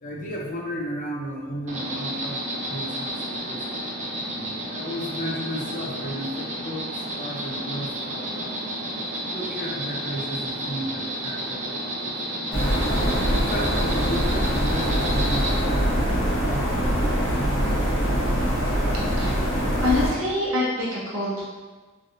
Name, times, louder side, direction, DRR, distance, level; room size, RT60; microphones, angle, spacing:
voice 1, 0.0-3.8 4.7-8.7 9.3-12.4 13.3-18.0, equal, 40° left, -2 dB, 0.5 m, -34 dB
Insect, 1.7-15.6, right 1 dB, 35° right, 0.5 m, -31 dB
sound 1, 12.5-20.1, equal, 65° left, 0.9 m, -23 dB
voice 2, 19.8-21.4, left 2 dB, 75° right, -5 dB, 0.9 m, -25 dB
3.2 x 2.6 x 2.6 m, 1.3 s
head